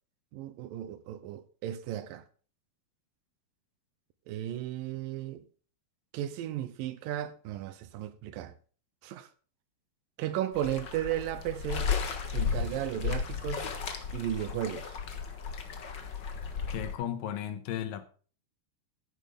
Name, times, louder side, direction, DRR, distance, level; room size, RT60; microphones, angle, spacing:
voice 1, 0.3-2.2 4.3-5.4 6.1-8.5 9.0-9.3 10.2-11.9 12.3-13.7 14.1-15.0, right 12 dB, 80° right, 2.5 m, -35 dB
sound 1, 10.5-16.9, left 6 dB, 50° left, 1.4 m, -34 dB
voice 2, 16.7-18.1, left 10 dB, 75° left, 2.5 m, -35 dB
13.5 x 10.5 x 3.7 m
omnidirectional pair, 4.1 m